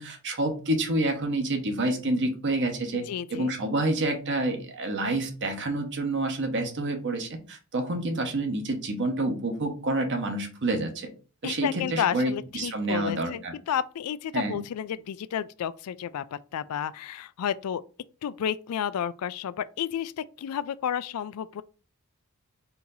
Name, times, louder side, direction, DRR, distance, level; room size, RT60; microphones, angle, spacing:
voice 1, 0.0-3.0 3.3-11.1 11.4-13.5 14.3-14.6, right 2 dB, 55° right, 1.0 m, -28 dB
voice 2, 3.1-3.5 11.4-17.8 18.2-21.6, left 9 dB, 85° left, 0.3 m, -31 dB
4.3 x 2.8 x 3.9 m
head